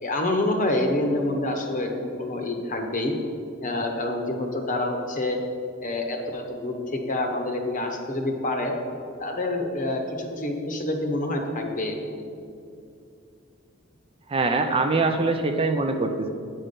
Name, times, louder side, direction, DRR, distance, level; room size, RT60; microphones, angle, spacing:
voice 1, 0.0-3.1 3.6-5.4 5.8-8.7 9.2-12.2, left 2 dB, 40° left, 4 dB, 0.9 m, -27 dB
voice 2, 14.3-16.3, right 3 dB, 30° right, 6 dB, 0.4 m, -23 dB
8.8 x 5.5 x 5.2 m, 2.5 s
head